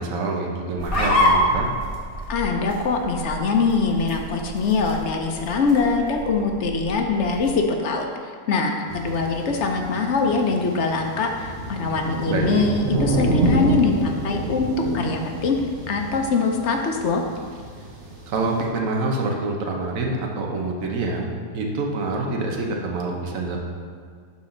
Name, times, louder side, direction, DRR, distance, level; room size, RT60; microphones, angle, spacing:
voice 1, 0.0-1.7 12.3-12.6 18.3-23.6, right 3 dB, 60° right, 0 dB, 1.3 m, -26 dB
sound 1, 0.8-7.6, equal, 25° left, 1.1 m, -27 dB
voice 2, 2.3-8.1 8.5-15.6 15.9-17.2, left 4 dB, 55° left, 3 dB, 0.9 m, -23 dB
sound 2, 8.9-18.7, right 2 dB, 35° right, 1.1 m, -28 dB
11.5 x 4.2 x 3.8 m, 2.1 s
omnidirectional pair, 1.7 m